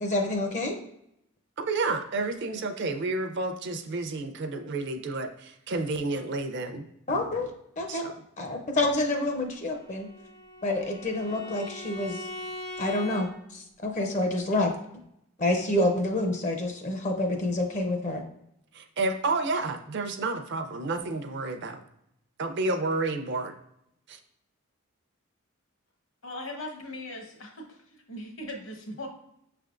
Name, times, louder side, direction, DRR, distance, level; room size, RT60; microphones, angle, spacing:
voice 1, 0.0-0.8 7.1-10.1 10.6-12.3 12.8-14.7 15.4-18.2, left 2 dB, 35° left, 3 dB, 0.5 m, -28 dB
voice 2, 1.6-6.9 7.9-8.1 18.7-21.8 22.4-23.5 24.1-24.2, right 3 dB, 55° right, 7 dB, 0.5 m, -30 dB
Bowed string instrument, 9.7-13.3, left 1 dB, 90° left, 1.6 m, -41 dB
voice 3, 26.2-27.8 28.1-29.1, left 1 dB, 65° left, 2 dB, 1.0 m, -39 dB
6.2 x 3.4 x 2.4 m, 0.77 s
head